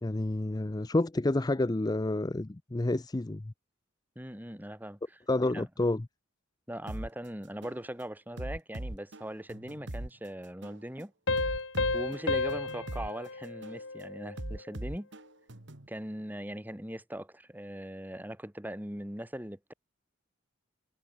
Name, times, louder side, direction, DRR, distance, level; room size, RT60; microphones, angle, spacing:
voice 1, 0.0-3.5 5.3-6.1, left 2 dB, 20° left, 0.5 m, -29 dB
voice 2, 4.1-5.2 5.5-5.6 6.7-11.1 11.9-15.1 15.9-19.7, right 1 dB, 10° right, 3.3 m, -40 dB
sound 1, 6.9-7.1 7.6-7.8 8.4-10.1 10.6-10.8 11.4-13.1 13.6-13.8 14.4-15.9, right 1 dB, 65° right, 2.2 m, -40 dB
Piano, 11.3-14.6, left 3 dB, 65° left, 2.8 m, -32 dB
head